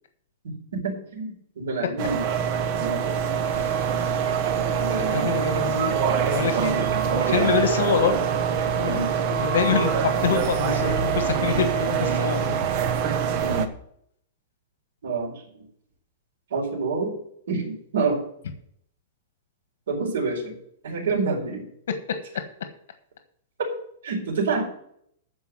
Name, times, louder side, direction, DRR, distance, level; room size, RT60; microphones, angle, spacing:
voice 1, 0.7-2.2 2.8-3.2 4.8-5.3 6.5-6.7 7.2-7.5 8.8-9.1 11.7-11.8 13.4-13.7 15.0-15.3 16.5-17.2 17.5-18.2 19.9-20.6 20.8-21.6 24.0-24.7, right 4 dB, 80° right, -1 dB, 4.6 m, -27 dB
sound 1, 2.0-13.7, right 7 dB, 35° right, 0.9 m, -24 dB
sound 2, 4.0-10.6 11.1-11.2, right 8 dB, 60° right, 1.4 m, -38 dB
voice 2, 5.0-6.0 6.3-8.2 8.7-9.0 9.3-12.6, left 6 dB, 80° left, 7 dB, 1.5 m, -26 dB
13.0 x 4.9 x 7.6 m, 0.67 s
supercardioid pair, 175°, 0 cm